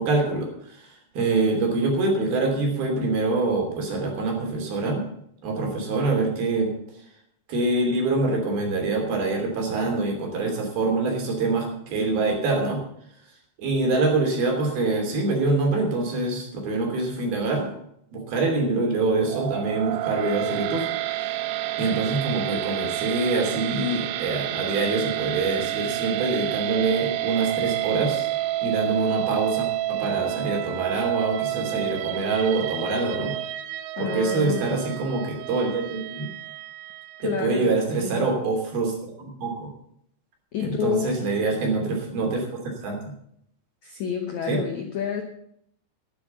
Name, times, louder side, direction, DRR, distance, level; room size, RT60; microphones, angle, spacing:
voice 1, 0.0-5.0 5.4-6.7 7.5-12.8 13.6-17.7 18.1-21.4 21.8-28.3 28.6-33.3 34.0-36.3 37.2-39.7 40.6-42.5 42.8-43.1 44.5-44.6, right 3 dB, 60° right, 1 dB, 4.7 m, -25 dB
sound 1, 19.2-37.5, right 15 dB, 85° right, 2.9 m, -29 dB
voice 2, 34.0-34.8 37.2-38.2 40.5-41.1 43.8-45.2, left 7 dB, 85° left, 4 dB, 1.6 m, -29 dB
12.0 x 9.9 x 6.9 m, 0.71 s
omnidirectional pair, 5.2 m